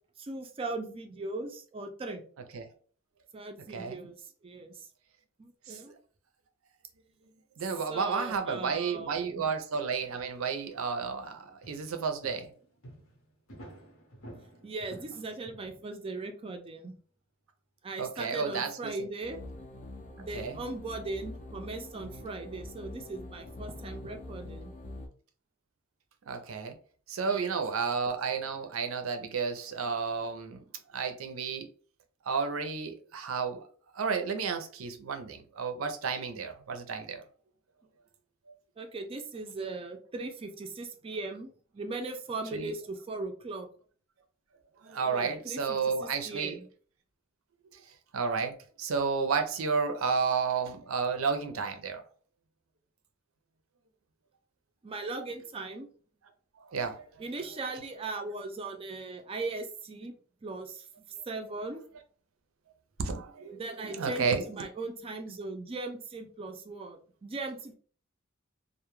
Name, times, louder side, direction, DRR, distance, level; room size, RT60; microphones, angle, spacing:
voice 1, 0.2-2.2 3.3-4.9 5.4-5.9 7.9-9.4 14.6-17.0 17.8-19.4 20.2-24.7 27.3-27.5 38.8-43.7 45.1-46.7 54.8-55.9 57.2-60.1 60.4-60.9 61.3-61.8 63.5-67.8, right 3 dB, 25° right, 0.4 m, -39 dB
voice 2, 3.7-4.0 5.7-5.8 7.6-12.5 18.0-18.9 20.2-20.6 26.3-26.8 27.1-30.6 30.9-31.7 32.2-33.6 33.9-37.2 42.5-42.7 44.8-46.6 47.6-47.8 48.1-52.0 56.6-57.2 63.0-64.4, right 5 dB, 80° right, 0.5 m, -32 dB
sound 1, 10.0-10.7 11.0-16.1, right 1 dB, 75° left, 0.8 m, -52 dB
sound 2, 19.2-25.1, left 2 dB, 40° left, 0.4 m, -44 dB
2.2 x 2.1 x 3.0 m
head